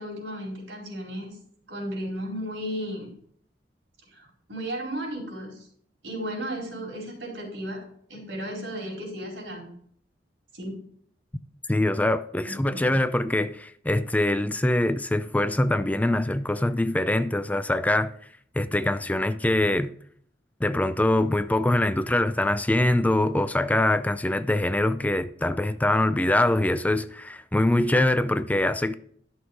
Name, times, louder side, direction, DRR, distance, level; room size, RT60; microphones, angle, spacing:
voice 1, 0.0-1.4 1.7-3.1 4.1-5.7 6.0-7.8 8.1-9.7 10.5-10.7 12.5-12.9, equal, 85° right, 4.4 m, -34 dB
voice 2, 11.7-18.1 18.6-19.9 20.6-28.9, left 1 dB, 10° left, 0.4 m, -23 dB
11.5 x 6.4 x 4.7 m
head